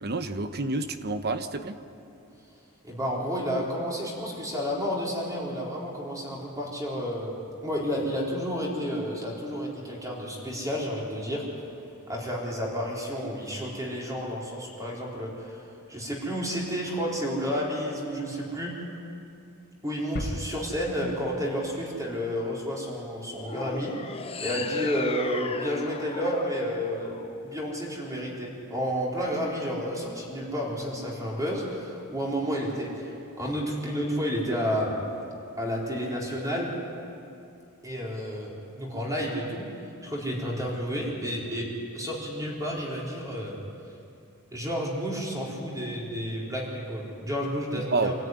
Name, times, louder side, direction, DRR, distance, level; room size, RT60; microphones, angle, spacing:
voice 1, 0.0-1.8 47.8-48.1, right 3 dB, 45° right, 9 dB, 1.0 m, -29 dB
voice 2, 2.8-11.4 12.1-18.8 19.8-34.9 35.6-36.7 37.8-39.7 40.0-43.6 44.5-48.1, equal, 15° right, -4 dB, 4.4 m, -31 dB
sound 1, 20.2-22.8, left 1 dB, 45° left, 1.2 m, -38 dB
sound 2, 23.4-27.8, left 4 dB, 25° left, 0.8 m, -37 dB
25.5 x 13.5 x 9.6 m, 2.6 s
head